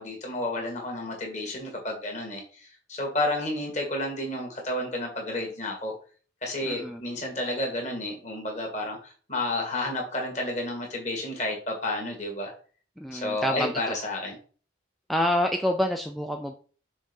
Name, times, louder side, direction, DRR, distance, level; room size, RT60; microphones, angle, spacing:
voice 1, 0.0-5.9 6.4-12.5 13.1-14.4, left 1 dB, 35° left, 1 dB, 2.1 m, -31 dB
voice 2, 6.6-7.0 13.0-13.7 15.1-16.5, left 1 dB, ahead, 3 dB, 0.4 m, -27 dB
6.4 x 3.5 x 5.4 m, 0.40 s
head